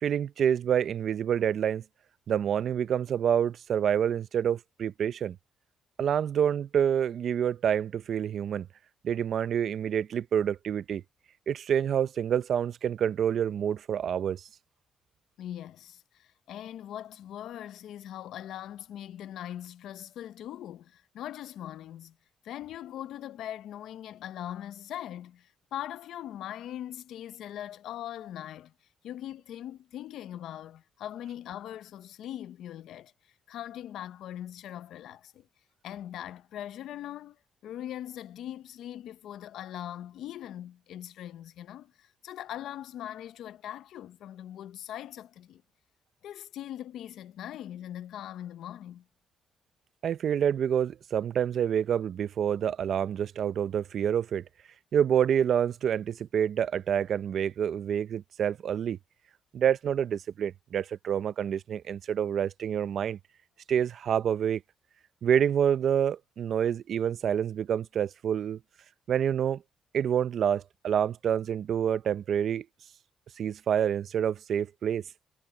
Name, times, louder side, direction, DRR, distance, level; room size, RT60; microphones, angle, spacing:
voice 1, 0.0-1.8 2.3-5.4 6.0-8.7 9.0-11.0 11.5-14.5 50.0-54.4 54.9-59.0 59.5-63.2 63.7-64.6 65.2-68.6 69.1-69.6 69.9-72.6 73.4-75.0, right 9 dB, 60° right, 0.7 m, -27 dB
voice 2, 15.4-22.2 22.4-28.7 29.0-33.1 33.5-35.5 35.8-37.4 37.6-45.6 46.2-49.0, left 11 dB, 80° left, 0.7 m, -41 dB
cardioid pair, 90°, 0 cm